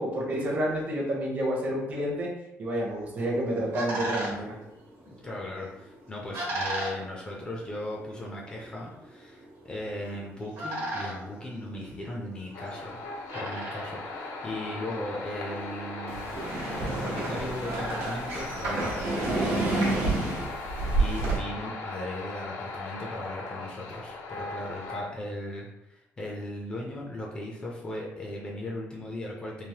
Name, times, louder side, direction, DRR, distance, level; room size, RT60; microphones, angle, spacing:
voice 1, 0.0-2.3 2.6-4.5, equal, 30° right, -2 dB, 0.6 m, -29 dB
sound 1, 3.1-19.3, right 1 dB, 70° right, 1.1 m, -39 dB
voice 2, 5.1-13.0 13.3-16.4 16.8-29.7, left 1 dB, 20° left, -3 dB, 0.4 m, -38 dB
sound 2, 12.5-25.0, left 3 dB, 80° left, 0.5 m, -38 dB
sound 3, 16.1-21.4, right 2 dB, 85° right, 0.8 m, -29 dB
3.1 x 2.0 x 2.8 m, 0.88 s
cardioid pair, 175°, 5 cm